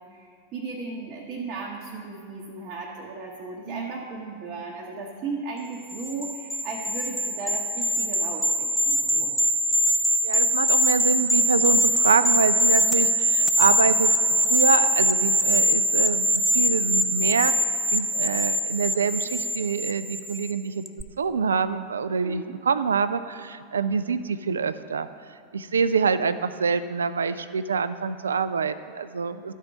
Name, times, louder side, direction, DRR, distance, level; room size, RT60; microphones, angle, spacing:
voice 1, 0.0-9.4 22.1-22.6, right 4 dB, 40° right, -3 dB, 0.9 m, -36 dB
voice 2, 3.7-4.0 10.2-14.1 14.4-17.5 17.9-20.8 21.2-25.1 25.5-29.5, right 5 dB, 70° right, 13 dB, 0.3 m, -26 dB
sound 1, 5.9-20.5 20.9-21.0, equal, 5° left, 0.4 m, -23 dB
12.5 x 4.5 x 5.1 m, 2.3 s
figure-of-eight pair, 90°, 0 cm